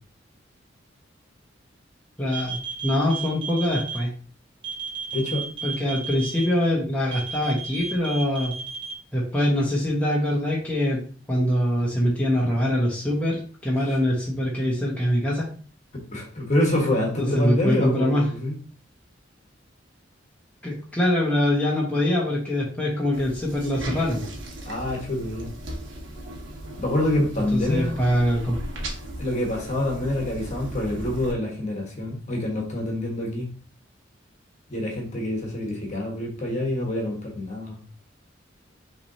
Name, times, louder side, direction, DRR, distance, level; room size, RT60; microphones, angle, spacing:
voice 1, 2.2-4.1 5.6-8.5 9.1-11.0 11.3-15.5 17.2-18.3 20.6-24.2 27.5-28.6, left 1 dB, 10° left, -4 dB, 1.0 m, -23 dB
sound 1, 2.3-4.0 4.6-6.4 7.1-8.9, right 6 dB, 30° right, 1.1 m, -33 dB
voice 2, 5.1-5.5 16.1-18.5 24.7-25.5 26.8-27.9 29.2-33.5 34.7-37.8, left 1 dB, 40° left, -1 dB, 1.3 m, -26 dB
sound 2, 23.1-31.3, right 1 dB, 80° right, 1.2 m, -37 dB
6.0 x 3.2 x 2.7 m, 0.42 s
head